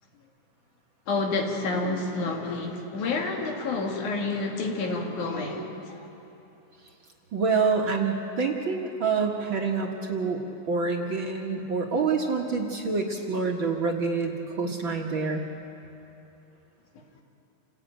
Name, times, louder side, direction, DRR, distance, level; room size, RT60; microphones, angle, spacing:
voice 1, 1.1-6.1, left 3 dB, 80° left, 2 dB, 3.6 m, -29 dB
voice 2, 7.3-10.4 10.7-15.5, right 4 dB, 50° right, 1 dB, 1.8 m, -27 dB
28.0 x 16.5 x 9.0 m, 2.9 s
omnidirectional pair, 3.4 m